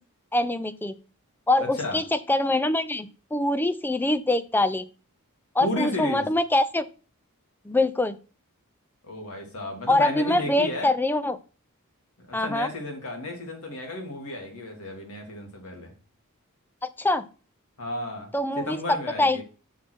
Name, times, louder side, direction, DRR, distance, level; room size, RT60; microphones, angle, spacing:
voice 1, 0.3-0.9 1.5-4.9 5.5-6.8 7.6-8.2 9.9-11.4 12.3-12.7 16.8-17.3 18.3-18.8 19.2-19.4, left 2 dB, 10° left, 11 dB, 0.4 m, -24 dB
voice 2, 1.6-2.0 5.6-6.3 9.0-10.9 12.2-15.9 17.8-19.4, left 2 dB, 75° left, 2 dB, 2.3 m, -33 dB
6.4 x 5.8 x 4.4 m, 0.36 s
head